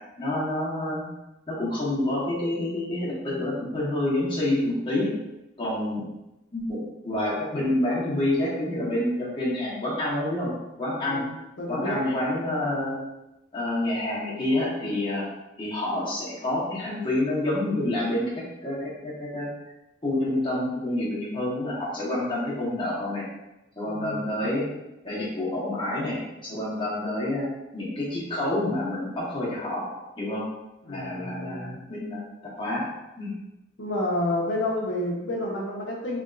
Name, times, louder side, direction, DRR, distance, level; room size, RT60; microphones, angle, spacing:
voice 1, 0.2-1.0 1.5-5.1 5.6-6.0 6.5-6.8 7.0-10.5 10.8-11.2 11.7-13.0 13.5-15.3 15.6-19.5 20.0-23.2 23.8-24.6 25.0-27.5 27.7-29.9 30.2-30.5 30.9-32.2 32.6-32.9 33.2-33.3, left 1 dB, 25° left, -8 dB, 1.3 m, -28 dB
voice 2, 11.6-12.0 23.8-24.3 30.8-31.8 33.8-36.2, left 1 dB, 75° left, -3 dB, 1.0 m, -30 dB
3.6 x 3.5 x 2.5 m, 0.95 s
head